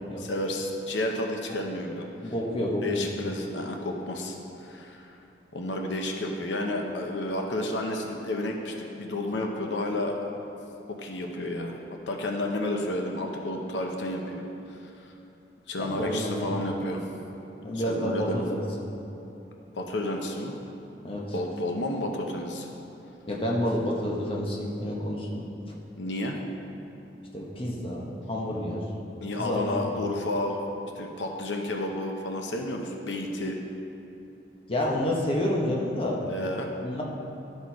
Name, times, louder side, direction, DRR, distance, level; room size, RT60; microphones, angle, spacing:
voice 1, 0.2-2.3 2.8-5.2 5.5-10.2 10.9-11.8 12.1-14.4 14.7-15.1 15.7-17.0 17.7-18.4 19.7-20.5 21.3-22.7 26.0-26.4 29.2-30.6 30.9-33.6 36.3-36.7, left 1 dB, 90° left, 2 dB, 0.7 m, -31 dB
voice 2, 2.2-3.1 15.8-16.7 17.6-18.6 21.0-21.3 23.3-25.5 27.3-28.8 29.3-30.0 34.7-36.2 36.8-37.0, left 1 dB, 30° left, -3 dB, 1.0 m, -29 dB
12.0 x 4.4 x 4.6 m, 2.9 s
head